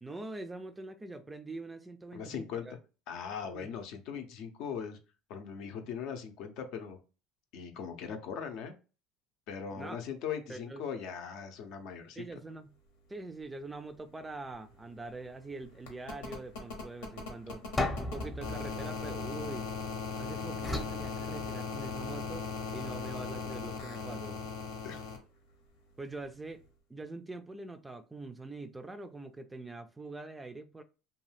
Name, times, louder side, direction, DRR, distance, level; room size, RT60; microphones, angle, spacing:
voice 1, 0.0-2.8 3.5-3.7 9.7-10.0 10.5-10.9 12.2-12.7 13.1-17.6 18.0-19.7 20.2-24.4 26.0-30.8, right 2 dB, 15° right, 0.3 m, -44 dB
voice 2, 2.1-2.7 3.1-5.0 5.3-7.0 7.5-8.7 9.5-12.2 20.5-20.6 24.8-25.0, left 7 dB, 65° left, 0.6 m, -40 dB
sound 1, 13.9-14.0 14.3-25.2 26.6-26.7, left 5 dB, 90° left, 0.9 m, -39 dB
sound 2, 17.8-20.0 20.6-22.0, left 2 dB, 15° left, 0.6 m, -37 dB
2.6 x 2.3 x 3.2 m
supercardioid pair, 100°, 0 cm